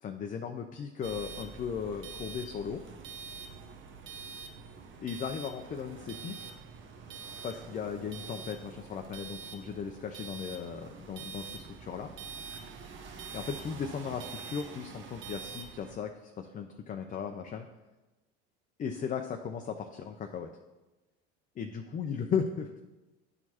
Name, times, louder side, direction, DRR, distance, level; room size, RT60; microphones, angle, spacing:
voice 1, 0.0-2.8 5.0-6.4 7.4-12.1 13.3-17.7 18.8-20.5 21.6-22.8, left 6 dB, 25° left, 5 dB, 0.5 m, -36 dB
sound 1, 1.0-16.0, right 5 dB, 40° right, 0.8 m, -45 dB
10.5 x 4.4 x 2.9 m, 1.1 s
hypercardioid pair, 80°, 31 cm